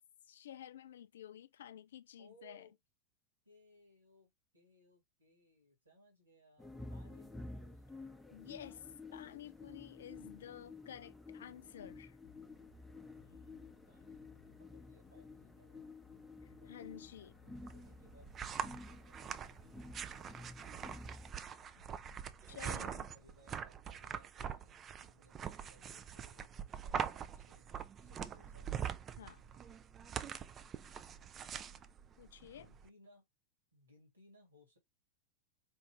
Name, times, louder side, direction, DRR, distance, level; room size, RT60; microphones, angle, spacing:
voice 1, 0.3-2.7 8.3-12.2 16.4-17.3 22.5-23.1 29.2-29.4 32.2-32.7, left 10 dB, 60° left, 0.3 m, -51 dB
voice 2, 2.2-2.8 3.4-7.9 13.1-15.9 16.5-16.7 17.0-21.1 22.4-27.7 28.0-28.7 32.4-33.3 33.7-34.8, left 1 dB, 75° right, 2.0 m, -66 dB
sound 1, 6.6-21.3, left 2 dB, 5° left, 0.7 m, -52 dB
sound 2, 12.2-23.7, left 14 dB, 45° left, 0.9 m, -66 dB
sound 3, 17.6-32.9, right 8 dB, 25° right, 0.4 m, -44 dB
4.6 x 2.5 x 3.2 m
figure-of-eight pair, 90°, 0 cm